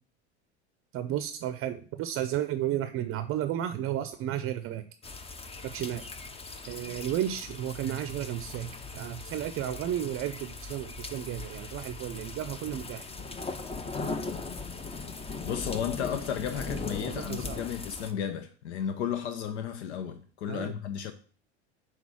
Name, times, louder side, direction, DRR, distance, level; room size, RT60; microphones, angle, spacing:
voice 1, 0.9-4.8 5.6-6.0 6.7-13.1 16.6-17.6 20.5-20.7, right 11 dB, 40° right, 0.6 m, -33 dB
sound 1, 5.0-18.1, left 4 dB, 15° left, 0.7 m, -39 dB
voice 2, 15.4-21.1, left 8 dB, 80° left, 0.7 m, -33 dB
6.1 x 4.0 x 6.1 m
hypercardioid pair, 90°, 33 cm